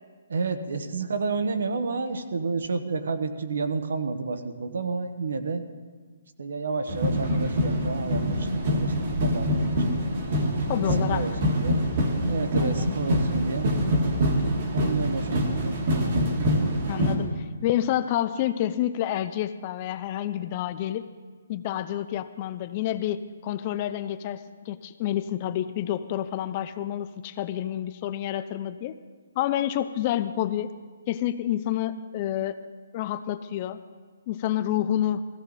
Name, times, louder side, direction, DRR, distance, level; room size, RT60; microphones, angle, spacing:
voice 1, 0.3-5.6 6.4-8.9 9.2-10.0 10.7-11.9 12.3-13.7 14.7-15.8, right 4 dB, 60° right, 9 dB, 1.1 m, -30 dB
sound 1, 6.9-17.2, equal, 30° right, 1.5 m, -25 dB
voice 2, 10.7-11.3 12.6-12.9 16.9-21.1 21.5-29.0 29.4-30.7 31.1-32.6 32.9-33.8 34.3-35.3, left 12 dB, 20° left, 12 dB, 0.3 m, -29 dB
15.5 x 15.5 x 4.0 m, 1.4 s
hypercardioid pair, 180°, 0 cm